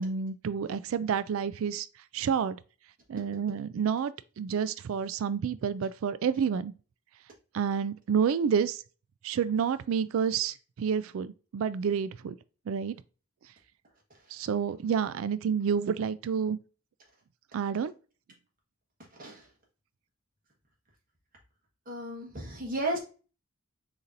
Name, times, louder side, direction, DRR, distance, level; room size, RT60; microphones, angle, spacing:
voice 1, 0.0-1.9 2.1-2.6 3.1-6.7 7.5-8.8 9.2-12.4 12.7-13.0 14.3-16.6 17.5-17.9, right 7 dB, 70° right, 0.3 m, -29 dB
voice 2, 21.9-23.0, right 1 dB, 40° right, 1.3 m, -33 dB
6.7 x 2.9 x 2.5 m
head